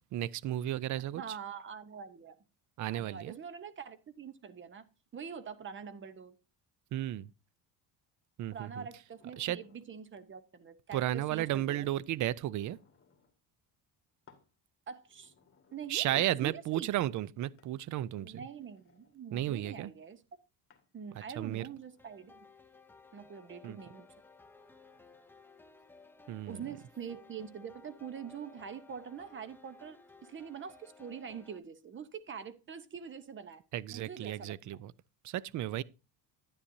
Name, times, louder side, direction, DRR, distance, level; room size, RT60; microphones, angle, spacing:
voice 1, 0.1-1.2 2.8-3.4 6.9-7.3 8.4-8.9 9.4-9.6 10.9-12.8 15.9-18.4 19.3-19.9 21.4-21.7 23.6-23.8 26.3-26.6 33.7-34.9 35.2-35.8, right 13 dB, 50° right, 0.5 m, -33 dB
voice 2, 1.0-2.4 2.9-4.9 5.1-6.3 8.5-11.9 14.9-15.3 15.7-16.9 18.2-20.2 20.9-22.5 23.1-24.1 26.5-33.6 33.9-34.8, right 7 dB, 30° right, 0.9 m, -45 dB
sound 1, 9.1-9.9 11.4-11.7 12.1-13.4 14.3-14.5 15.0-16.3 17.6-17.8 18.4-19.2 20.7-21.0 21.6-22.5 23.6-23.9 24.5-25.3 26.4-26.6 27.1-27.5, left 6 dB, 30° left, 1.9 m, -65 dB
sound 2, 22.0-31.6, left 3 dB, 5° left, 0.6 m, -58 dB
10.0 x 9.9 x 2.7 m
cardioid pair, 130°, 40 cm